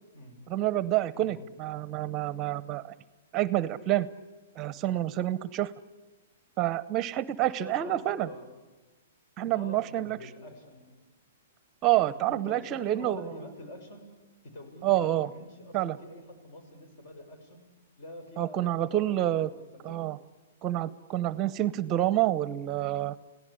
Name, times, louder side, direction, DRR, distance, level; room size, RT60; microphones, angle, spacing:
voice 1, 0.5-2.9 3.3-4.1 4.6-5.7 6.6-8.3 9.4-10.2 11.8-13.3 14.8-15.3 15.7-16.0 18.4-19.5 19.8-20.2 20.6-23.2, right 14 dB, 30° right, 17 dB, 0.7 m, -28 dB
voice 2, 7.5-8.5 9.4-11.0 11.9-14.1 14.4-17.7 18.0-20.1, left 1 dB, 55° left, 7 dB, 6.6 m, -46 dB
28.5 x 17.0 x 10.0 m, 1.2 s
hypercardioid pair, 140°, 0 cm